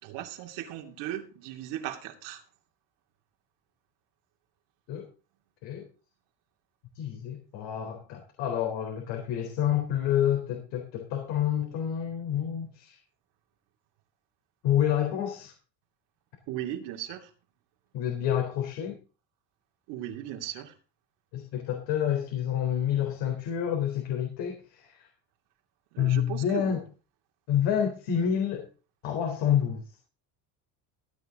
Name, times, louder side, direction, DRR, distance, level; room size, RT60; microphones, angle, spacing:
voice 1, 0.0-2.4 16.5-17.3 19.9-20.7 25.9-26.7, right 12 dB, 75° right, 2.8 m, -37 dB
voice 2, 7.0-13.0 14.6-15.5 17.9-19.0 21.3-25.1 26.0-26.8 27.5-28.7 29.0-29.8, left 9 dB, 85° left, 3.9 m, -28 dB
16.0 x 9.7 x 3.8 m
cardioid pair, 155°, 42 cm